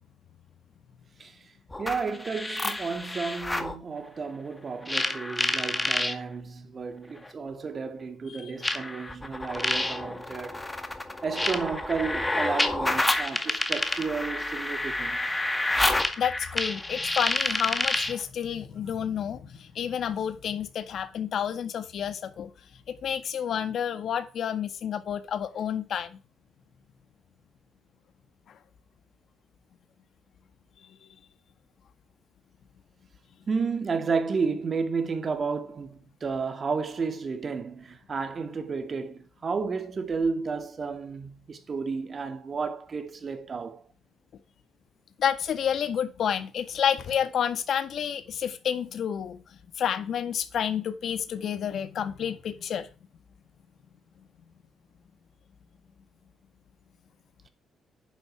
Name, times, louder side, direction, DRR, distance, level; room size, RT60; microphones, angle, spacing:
sound 1, 1.7-3.7 4.9-6.1 7.2-7.3 8.6-18.2, left 2 dB, 15° left, 2.0 m, -29 dB
voice 1, 1.8-10.7 11.2-15.3 33.5-43.8, right 5 dB, 40° right, 2.4 m, -32 dB
voice 2, 16.0-22.5 22.9-26.2 28.5-28.6 45.2-49.4 49.8-52.9, left 8 dB, 65° left, 1.8 m, -30 dB
11.0 x 10.0 x 4.8 m
cardioid pair, 90°, 0 cm